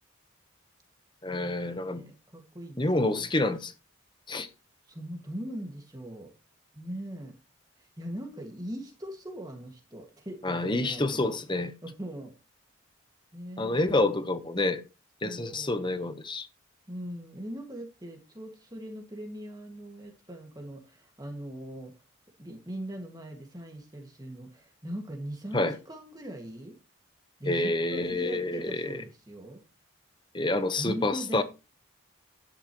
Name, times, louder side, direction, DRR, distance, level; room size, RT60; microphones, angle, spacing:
voice 1, 1.2-2.0 2.8-3.7 4.3-4.5 10.4-11.7 13.6-14.8 15.2-16.5 25.5-25.7 27.5-29.0 30.3-31.4, left 2 dB, 20° left, 1.1 m, -28 dB
voice 2, 1.7-3.3 4.9-6.3 6.7-7.4 7.8-11.3 11.8-12.3 13.3-14.3 15.2-15.7 16.9-21.9 22.4-26.8 27.4-29.6 30.8-31.4, right 1 dB, 20° right, 2.0 m, -40 dB
11.5 x 10.0 x 3.1 m
head